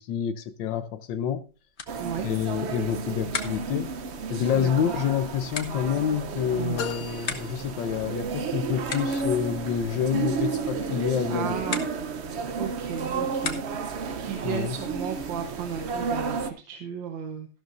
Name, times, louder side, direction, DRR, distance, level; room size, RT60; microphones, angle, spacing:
voice 1, 0.0-1.4 2.2-3.9 4.3-11.6 14.4-14.8, left 8 dB, 85° left, 1.4 m, -28 dB
sound 1, 1.3-14.0, left 5 dB, 40° left, 1.2 m, -41 dB
sound 2, 1.9-16.5, right 5 dB, 55° right, 0.8 m, -32 dB
sound 3, 6.8-8.4, left 7 dB, 65° left, 1.5 m, -37 dB
voice 2, 11.3-11.8 12.6-13.6 14.2-17.5, right 8 dB, 85° right, 1.7 m, -34 dB
13.5 x 12.0 x 2.6 m
omnidirectional pair, 2.0 m